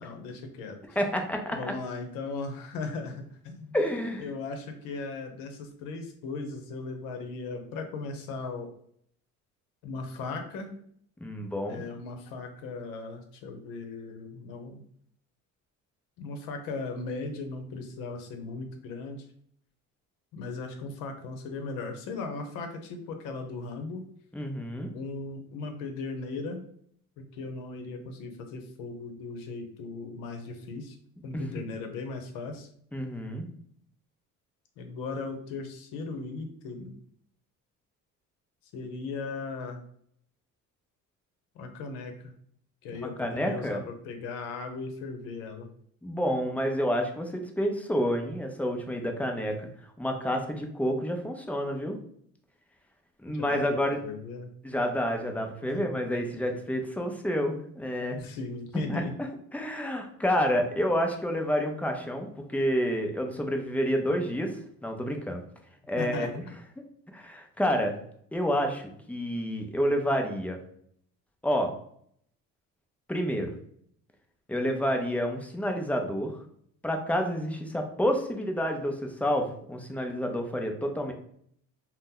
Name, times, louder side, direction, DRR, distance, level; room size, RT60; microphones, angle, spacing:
voice 1, 0.0-1.0 1.5-3.8 4.2-8.7 9.8-10.7 11.7-14.8 16.2-19.2 20.3-24.0 24.9-26.6 27.2-31.0 31.2-32.7 34.8-36.9 38.7-39.8 41.5-42.1 42.8-45.7 53.4-54.5 55.7-55.8 58.2-59.1 66.0-66.4, left 3 dB, 85° left, 5 dB, 0.7 m, -37 dB
voice 2, 1.0-1.8 3.7-4.3 11.2-11.8 24.3-24.9 31.3-31.7 32.9-33.4 42.9-43.8 46.0-49.7 50.0-52.0 53.2-54.0 54.6-58.2 58.9-59.0 59.5-65.4 65.9-66.3 67.1-67.9 68.3-70.6 71.4-71.7 73.1-73.5 74.5-76.4 76.8-81.1, equal, 5° left, 3 dB, 0.4 m, -29 dB
2.7 x 2.1 x 3.7 m, 0.65 s
cardioid pair, 105°, 32 cm